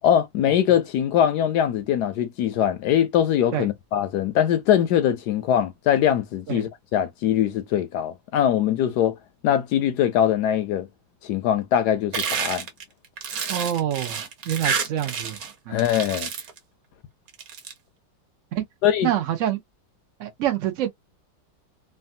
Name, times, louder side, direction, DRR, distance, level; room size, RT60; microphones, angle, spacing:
voice 1, 0.0-9.2 9.4-10.9 11.2-12.7 15.7-16.3 18.8-19.1, left 10 dB, 75° left, 1.0 m, -22 dB
sound 1, 12.1-15.5 15.8-16.6 17.3-17.7, right 6 dB, 55° right, 1.2 m, -29 dB
voice 2, 13.5-15.4 15.7-15.8 18.5-18.6 19.0-19.6 20.2-20.9, right 11 dB, 85° right, 0.6 m, -26 dB
3.3 x 2.3 x 2.6 m
omnidirectional pair, 2.1 m